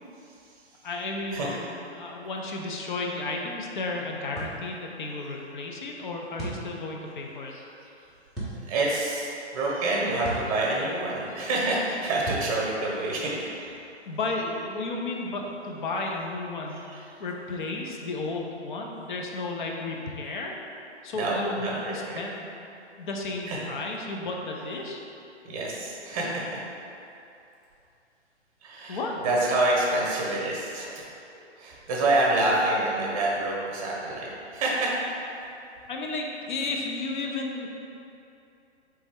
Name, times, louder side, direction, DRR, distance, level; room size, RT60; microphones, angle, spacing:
voice 1, 0.8-7.5 14.1-16.9 17.2-20.6 21.0-22.5 23.0-25.0 28.9-29.1 35.9-37.7, left 3 dB, 45° left, 0 dB, 0.6 m, -33 dB
sound 1, 4.4-4.6 6.4-6.7 8.3-8.6 10.2-10.5 12.2-12.5, right 2 dB, ahead, 0.6 m, -34 dB
voice 2, 8.7-13.7 16.9-17.0 21.1-22.2 23.5-23.6 25.4-26.6 28.6-30.9 31.6-34.9, right 2 dB, 30° right, -4 dB, 0.9 m, -27 dB
3.9 x 3.3 x 3.5 m, 2.8 s
hypercardioid pair, 135°, 35 cm